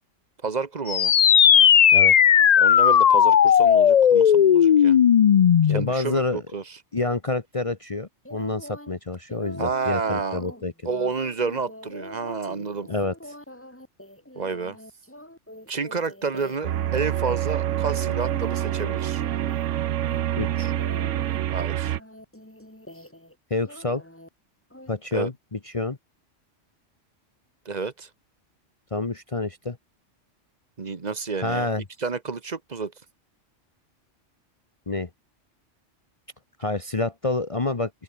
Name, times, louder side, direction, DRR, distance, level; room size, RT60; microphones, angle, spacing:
voice 1, 0.4-1.1 2.6-5.0 5.7-6.6 9.6-10.4 10.8-12.9 14.3-14.8 15.7-19.2 21.5-22.0 25.1-25.3 27.6-28.1 30.8-31.7 32.0-32.9, right 4 dB, 35° right, 1.3 m, -30 dB
sound 1, 0.9-5.9, left 9 dB, 55° left, 0.4 m, -16 dB
voice 2, 5.7-6.4 6.9-10.7 12.9-13.1 20.3-20.7 23.5-24.0 24.9-26.0 28.9-29.8 31.4-31.8 34.9-35.1 36.6-37.9, left 3 dB, 30° left, 1.1 m, -28 dB
sound 2, 8.2-8.9 9.3-17.3 17.6-18.9 19.2-19.7 20.0-23.3 23.6-24.3 24.7-24.9, left 1 dB, 10° left, 3.0 m, -44 dB
sound 3, 16.6-22.0, right 12 dB, 80° right, 1.0 m, -26 dB
open air
omnidirectional pair, 1.3 m